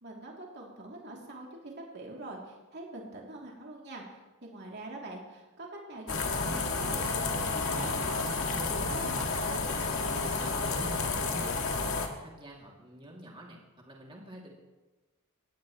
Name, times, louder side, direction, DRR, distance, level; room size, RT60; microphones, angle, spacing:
voice 1, 0.0-9.6, right 2 dB, 50° right, -2 dB, 2.9 m, -44 dB
sound 1, 6.1-12.1, left 3 dB, 65° left, 1.7 m, -31 dB
voice 2, 10.1-13.6 13.9-14.5, right 1 dB, 25° right, -2 dB, 2.5 m, -47 dB
20.0 x 15.5 x 3.1 m, 1.2 s
head